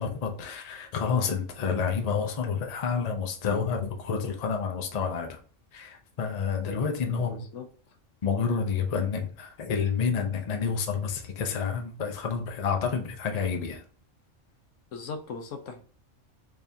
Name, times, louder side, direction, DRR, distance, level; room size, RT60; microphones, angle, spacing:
voice 1, 0.0-5.4 5.7-7.3 8.2-13.8, left 6 dB, 40° left, 0.6 m, -29 dB
voice 2, 7.1-7.7 14.9-15.8, left 4 dB, 75° left, 1.0 m, -39 dB
3.5 x 3.5 x 2.7 m
omnidirectional pair, 1.3 m